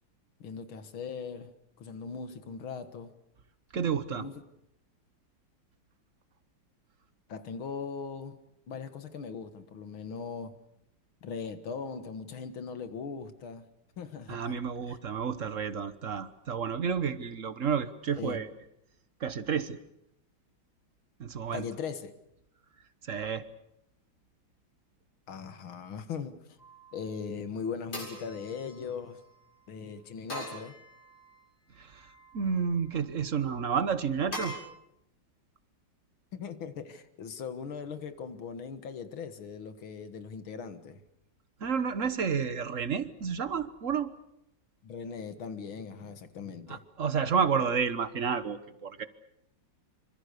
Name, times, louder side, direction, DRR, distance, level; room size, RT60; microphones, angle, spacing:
voice 1, 0.4-1.5 1.8-3.1 4.1-4.4 7.3-8.4 8.7-10.6 11.2-13.7 14.0-14.6 14.9-15.0 18.2-18.4 21.5-22.1 25.3-26.4 26.9-29.2 29.7-30.7 36.3-41.0 44.8-46.8, left 6 dB, 80° left, 11 dB, 2.5 m, -39 dB
voice 2, 3.7-4.3 14.3-18.5 19.2-19.8 21.2-21.6 23.0-23.4 31.8-32.1 32.3-34.5 41.6-44.1 46.7-49.0, right 6 dB, 45° right, 13 dB, 1.3 m, -30 dB
sound 1, 26.6-27.1 27.9-29.3 30.3-31.4 31.9-32.6 34.3-34.5, equal, 60° left, 8.5 m, -42 dB
26.5 x 25.5 x 6.8 m, 0.81 s
omnidirectional pair, 2.2 m